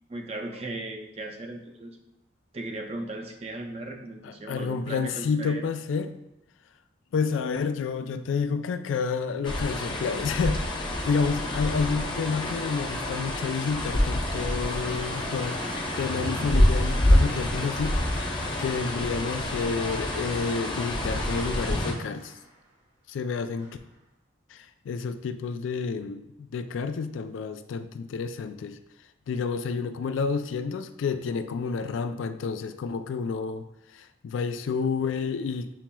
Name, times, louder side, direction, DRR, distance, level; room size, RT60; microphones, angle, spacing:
voice 1, 0.1-2.0 2.5-5.6, right 2 dB, 30° right, 2 dB, 0.5 m, -37 dB
voice 2, 4.2-6.1 7.1-15.6 16.0-18.3 18.6-22.3 23.1-23.8 24.5-28.8 29.3-33.7 33.9-35.7, left 5 dB, 85° left, 10 dB, 0.3 m, -30 dB
sound 1, 9.4-21.9, left 1 dB, 25° left, 0.5 m, -27 dB
Applause, 13.9-22.8 23.6-24.0, right 2 dB, 60° right, 1.5 m, -46 dB
7.0 x 3.0 x 2.2 m, 0.89 s
head